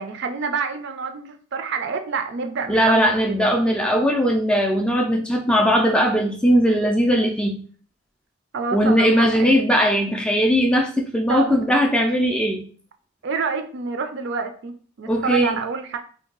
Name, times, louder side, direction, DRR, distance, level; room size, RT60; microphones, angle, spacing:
voice 1, 0.0-3.5 8.5-9.8 11.3-11.6 13.2-16.0, right 5 dB, 60° right, 7 dB, 0.4 m, -28 dB
voice 2, 2.7-7.6 8.7-12.6 15.1-15.6, equal, 5° left, 2 dB, 0.3 m, -19 dB
2.7 x 2.3 x 3.7 m, 0.44 s
head